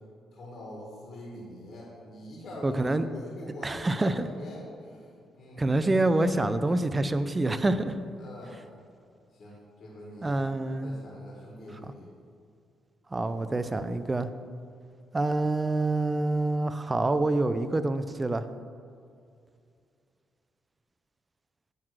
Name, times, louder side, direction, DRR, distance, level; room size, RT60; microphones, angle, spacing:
voice 1, 0.3-5.7 8.2-8.6 9.3-12.1 13.1-13.6, left 1 dB, 60° left, -3 dB, 1.8 m, -44 dB
voice 2, 2.6-3.1 3.6-4.3 5.6-8.0 10.2-10.9 13.1-14.3 15.1-18.4, right 2 dB, 20° right, 11 dB, 0.5 m, -26 dB
9.3 x 3.8 x 6.4 m, 2.4 s
cardioid pair, 90°, 0 cm